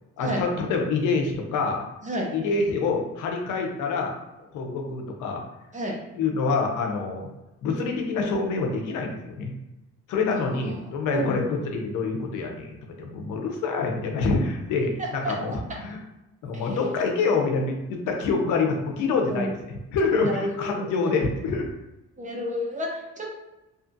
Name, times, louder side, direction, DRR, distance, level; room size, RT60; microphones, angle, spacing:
voice 1, 0.2-1.9 2.3-4.2 4.5-5.4 6.2-7.3 7.6-9.5 10.1-16.0 16.4-19.5 19.9-21.7, left 4 dB, 90° left, 2 dB, 0.6 m, -26 dB
voice 2, 20.1-21.2 22.2-23.3, equal, 25° right, -1 dB, 0.7 m, -30 dB
2.7 x 2.4 x 2.6 m, 0.96 s
cardioid pair, 90°, 30 cm